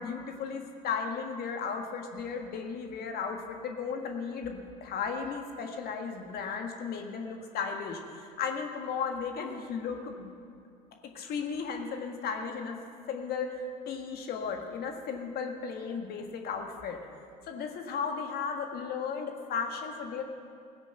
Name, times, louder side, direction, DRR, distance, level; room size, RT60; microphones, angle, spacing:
voice 1, 0.0-10.3 11.1-12.8 13.1-17.0 17.4-20.2, left 6 dB, 50° left, 3 dB, 1.6 m, -35 dB
17.5 x 10.0 x 6.7 m, 2.4 s
hypercardioid pair, 65°, 20 cm